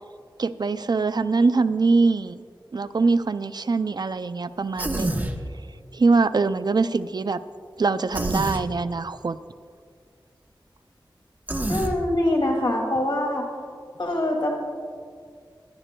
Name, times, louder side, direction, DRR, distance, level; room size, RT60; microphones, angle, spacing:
voice 1, 0.4-2.4 2.7-5.3 5.9-7.4 7.8-9.4, right 4 dB, 55° right, 13 dB, 0.4 m, -23 dB
Human voice, 4.8-5.4 8.1-8.6 11.5-12.0, right 1 dB, 20° right, 0.9 m, -26 dB
voice 2, 11.7-13.4 14.0-14.5, left 1 dB, 65° left, 0 dB, 2.3 m, -24 dB
22.0 x 11.0 x 2.2 m, 2.1 s
wide cardioid pair, 65°, 9 cm